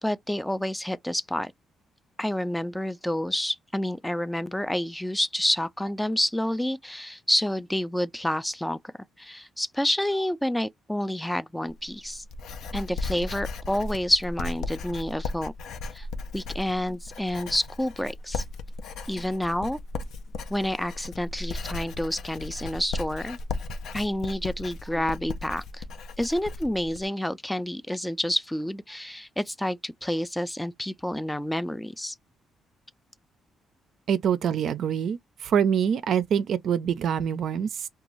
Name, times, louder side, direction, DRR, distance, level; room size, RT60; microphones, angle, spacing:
voice 1, 0.0-1.5 2.2-8.8 9.2-12.2 12.7-15.5 15.9-16.1 16.3-18.4 19.1-19.8 20.5-23.4 23.9-25.8 26.2-32.1, left 1 dB, 5° left, 0.3 m, -29 dB
Writing, 11.7-27.1, left 3 dB, 75° left, 0.4 m, -36 dB
voice 2, 34.1-37.9, right 8 dB, 65° right, 0.4 m, -25 dB
2.5 x 2.3 x 3.0 m
cardioid pair, 90°, 0 cm